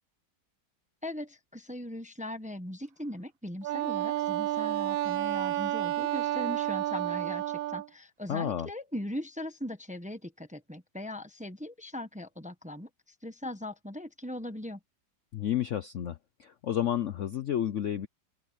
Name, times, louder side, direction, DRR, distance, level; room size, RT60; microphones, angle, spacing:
voice 1, 1.0-12.9 13.2-14.8, left 1 dB, 5° right, 0.8 m, -39 dB
Wind instrument woodwind instrument, 3.6-7.9, right 15 dB, 80° right, 1.4 m, -30 dB
voice 2, 8.3-8.7 15.3-18.1, left 10 dB, 80° left, 0.6 m, -31 dB
open air
omnidirectional pair, 2.2 m